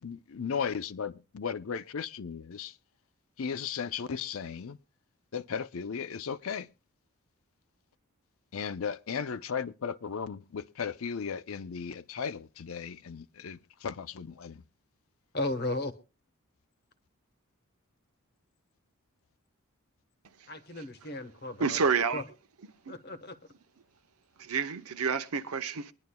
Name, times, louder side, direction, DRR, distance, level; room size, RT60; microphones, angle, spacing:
voice 1, 0.0-2.8 3.4-4.8 5.3-6.7 8.5-14.6, left 6 dB, 70° left, 0.5 m, -36 dB
voice 2, 15.3-15.9 20.5-21.8 22.1-22.2 22.9-23.4, left 2 dB, 45° left, 1.1 m, -35 dB
voice 3, 21.6-22.2 22.9-23.0 24.4-25.9, right 5 dB, 80° right, 0.8 m, -29 dB
23.5 x 10.5 x 2.2 m
head